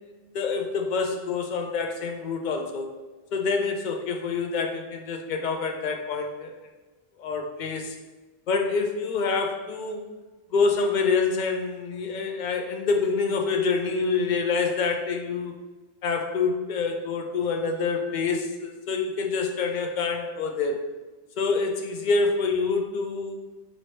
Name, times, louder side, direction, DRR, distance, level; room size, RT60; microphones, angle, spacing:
voice 1, 0.3-2.9 3.3-6.5 7.2-8.0 8.5-10.0 10.5-15.5 16.0-20.8 21.4-23.4, left 4 dB, 55° left, 3 dB, 0.6 m, -26 dB
4.4 x 2.8 x 3.1 m, 1.2 s
omnidirectional pair, 1.0 m